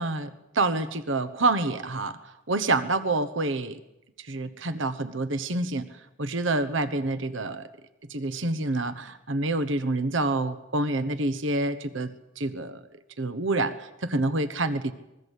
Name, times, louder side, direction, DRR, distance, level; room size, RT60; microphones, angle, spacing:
voice 1, 0.0-2.2 2.5-3.8 4.2-5.9 6.2-7.7 8.1-12.8 13.2-14.9, right 2 dB, 65° right, 13 dB, 1.1 m, -27 dB
26.0 x 21.0 x 8.2 m, 0.93 s
head